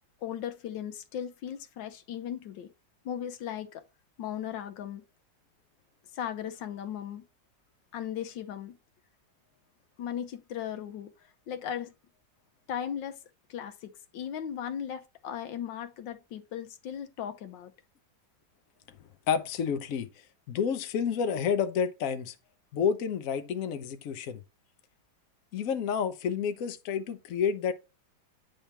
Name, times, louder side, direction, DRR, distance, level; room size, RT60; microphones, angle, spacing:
voice 1, 0.2-2.7 3.0-3.8 4.2-5.0 6.1-7.3 7.9-8.8 10.0-11.1 11.5-11.9 12.7-13.2 13.5-17.7, left 9 dB, 85° left, 1.5 m, -37 dB
voice 2, 19.3-20.1 20.5-22.3 22.7-24.4 25.5-27.7, left 7 dB, 60° left, 1.0 m, -29 dB
9.1 x 3.4 x 4.3 m
omnidirectional pair, 2.0 m